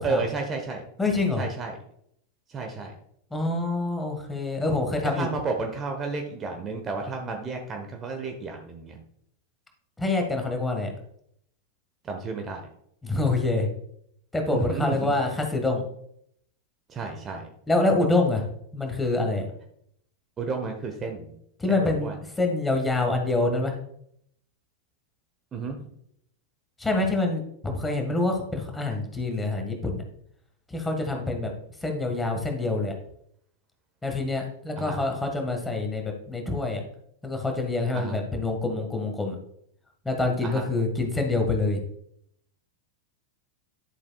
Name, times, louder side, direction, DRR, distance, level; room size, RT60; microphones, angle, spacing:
voice 1, 0.0-0.8 1.4-1.8 2.5-2.9 5.1-9.0 12.0-12.7 14.5-15.1 16.9-17.5 20.4-21.3 21.7-22.1 25.5-25.8 34.8-35.0 37.9-38.2 40.4-40.7, right 4 dB, 25° right, 3 dB, 1.1 m, -32 dB
voice 2, 1.0-1.4 3.3-5.3 10.0-10.9 13.0-13.7 14.3-15.8 17.7-19.4 21.6-22.1 22.4-23.8 26.8-30.0 30.7-31.5 31.8-32.9 34.0-36.8 37.2-39.4 40.0-41.8, left 2 dB, 10° left, 3 dB, 1.7 m, -26 dB
11.0 x 7.3 x 2.4 m, 0.71 s
figure-of-eight pair, 90°, 0 cm